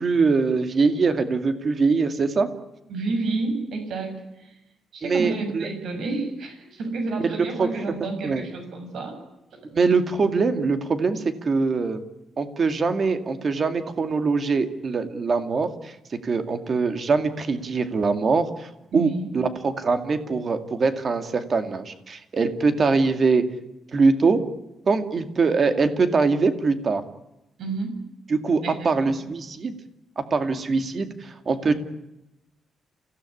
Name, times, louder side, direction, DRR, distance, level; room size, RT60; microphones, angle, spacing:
voice 1, 0.0-2.5 5.0-5.7 7.2-7.7 8.0-8.4 9.7-12.0 12.4-23.4 23.9-24.4 24.9-27.0 28.3-29.8 30.2-31.7, right 4 dB, 35° right, 9 dB, 2.3 m, -23 dB
voice 2, 2.9-4.6 4.9-9.1 9.5-9.6 18.9-19.3 27.6-28.0 28.6-29.3, right 3 dB, 60° right, 6 dB, 7.4 m, -30 dB
28.5 x 17.0 x 10.0 m, 0.92 s
wide cardioid pair, 175°, 0 cm